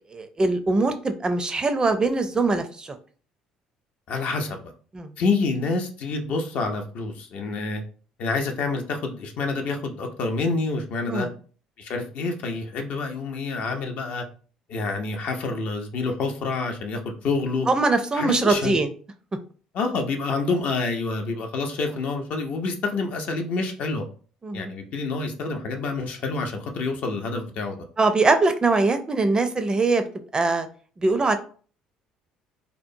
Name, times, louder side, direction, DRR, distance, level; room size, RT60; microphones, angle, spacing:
voice 1, 0.1-3.0 4.9-5.1 11.1-11.3 17.7-18.9 24.4-24.7 28.0-30.0 30.3-30.7 31.0-31.4, right 3 dB, 25° right, 8 dB, 0.4 m, -22 dB
voice 2, 4.1-4.7 5.2-7.8 8.2-11.3 11.8-14.2 14.7-17.7 18.1-18.8 19.7-24.0 24.5-27.8, left 3 dB, 60° left, 4 dB, 0.5 m, -27 dB
2.8 x 2.0 x 2.6 m, 0.41 s
hypercardioid pair, 60°, 3 cm